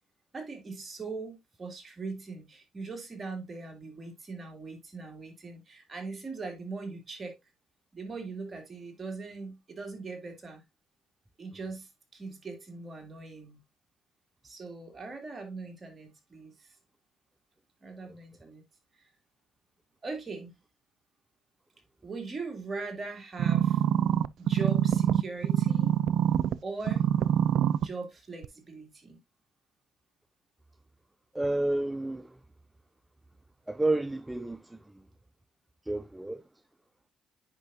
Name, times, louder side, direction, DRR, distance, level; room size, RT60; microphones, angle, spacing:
voice 1, 0.3-7.3 7.9-10.6 11.4-13.6 14.4-16.7 17.8-18.6 19.0-19.1 20.0-20.5 22.0-23.8 24.4-26.0 26.6-27.0 27.8-29.2, right 3 dB, 30° right, 3.0 m, -40 dB
sound 1, 23.4-26.5 26.9-27.9 28.4-28.5, right 10 dB, 75° right, 0.3 m, -25 dB
voice 2, 31.4-32.2 33.7-34.6 35.9-36.4, right 2 dB, 10° right, 0.5 m, -29 dB
9.7 x 5.4 x 2.7 m
cardioid pair, 90°, 0 cm